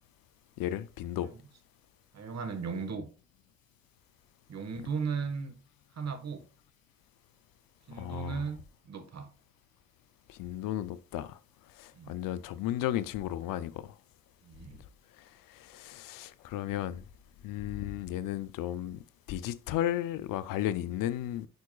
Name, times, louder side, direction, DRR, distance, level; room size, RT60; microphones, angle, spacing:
voice 1, 0.6-1.3 7.9-8.5 10.3-11.4 11.8-13.9 15.5-17.0 17.4-21.5, left 12 dB, 90° left, 0.5 m, -34 dB
voice 2, 2.1-3.1 4.5-5.5 5.9-6.5 7.9-9.3 11.9-12.1 14.4-14.8, right 5 dB, 55° right, 1.6 m, -36 dB
9.5 x 4.6 x 2.3 m
cardioid pair, 80°, 32 cm